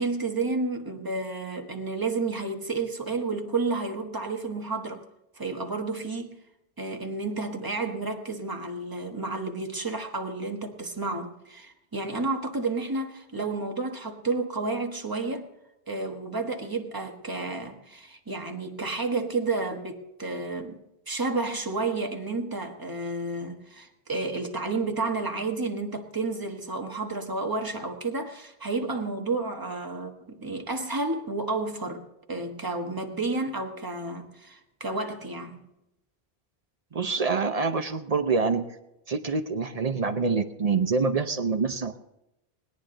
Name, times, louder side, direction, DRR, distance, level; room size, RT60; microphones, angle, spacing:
voice 1, 0.0-5.0 5.3-6.4 6.8-15.5 15.9-20.8 21.1-35.6, right 3 dB, 20° right, 3 dB, 1.3 m, -31 dB
voice 2, 36.9-38.8 39.1-42.0, right 4 dB, 40° right, 9 dB, 0.7 m, -26 dB
20.0 x 10.0 x 3.8 m, 0.87 s
omnidirectional pair, 1.1 m